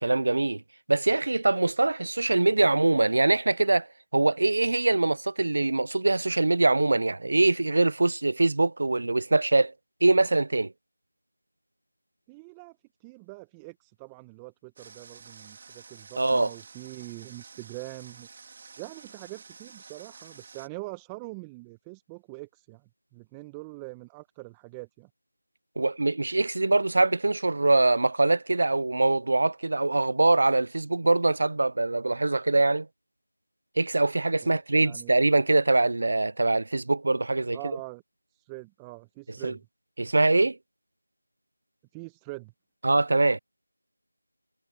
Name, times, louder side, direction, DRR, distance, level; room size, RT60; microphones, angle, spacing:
voice 1, 0.0-0.6 0.9-3.9 4.1-9.7 10.0-10.7 16.2-16.5 25.8-32.9 33.8-37.6 39.4-39.5 40.0-40.6 42.8-43.4, right 2 dB, 50° right, 0.6 m, -23 dB
voice 2, 12.3-18.3 18.8-25.1 34.4-35.2 37.5-38.0 38.3-39.6 41.9-42.5, right 27 dB, 10° right, 1.2 m, -43 dB
Water, 14.8-20.7, right 5 dB, 30° right, 4.0 m, -50 dB
figure-of-eight pair, 165°, 0 cm